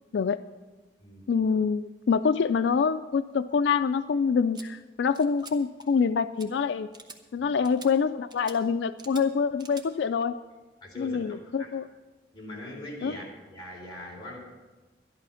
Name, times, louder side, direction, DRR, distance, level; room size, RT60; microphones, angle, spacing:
voice 1, 1.3-6.9 7.3-10.4 11.0-11.8 13.0-13.1, left 5 dB, 80° left, 12 dB, 0.4 m, -26 dB
sound 1, 4.5-4.7 5.1-5.5 5.8-6.1 6.4-6.5 6.9-7.2 7.6-7.9 8.3-8.6 9.0-9.2 9.6-9.9, right 3 dB, 25° right, 1.0 m, -46 dB
voice 2, 10.8-11.7 12.3-14.4, left 1 dB, 25° left, -3 dB, 4.0 m, -42 dB
12.0 x 11.5 x 5.7 m, 1.2 s
head